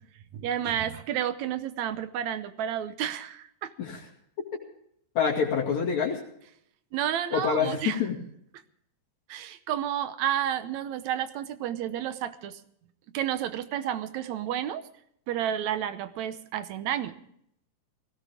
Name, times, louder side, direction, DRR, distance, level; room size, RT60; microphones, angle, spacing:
voice 1, 0.3-3.7 6.9-8.0 9.3-12.6 13.1-14.8 15.3-17.1, right 10 dB, 70° right, 12 dB, 2.1 m, -31 dB
voice 2, 5.2-6.2 7.3-8.2, left 6 dB, 65° left, -2 dB, 3.6 m, -26 dB
19.0 x 17.0 x 3.5 m, 0.70 s
omnidirectional pair, 3.5 m